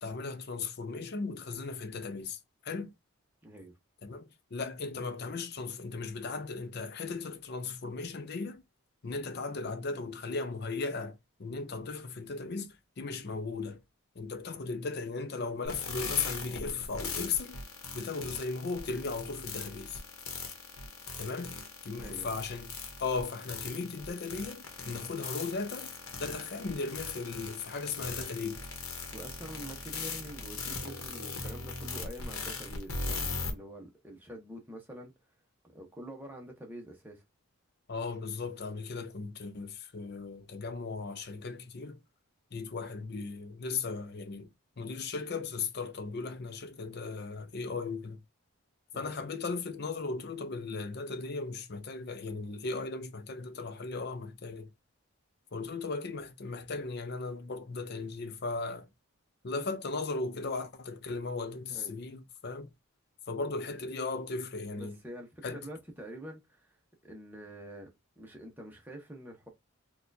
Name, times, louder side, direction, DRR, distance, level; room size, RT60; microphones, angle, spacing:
voice 1, 0.0-2.9 4.0-8.6 9.0-13.8 14.2-17.6 17.9-20.0 21.2-21.6 21.8-22.7 23.0-25.9 26.2-28.7 37.9-42.0 42.5-44.5 44.8-48.2 48.9-54.7 55.5-58.9 59.4-62.7 63.3-65.0 65.4-65.7, left 4 dB, 45° left, 0.5 m, -37 dB
voice 2, 3.4-3.7 22.0-22.3 29.1-35.1 35.7-37.2 48.9-49.2 61.7-62.0 64.7-66.8 67.0-69.5, right 1 dB, 10° right, 0.8 m, -46 dB
sound 1, 15.7-33.5, left 4 dB, 75° left, 0.9 m, -39 dB
4.2 x 2.3 x 2.6 m
head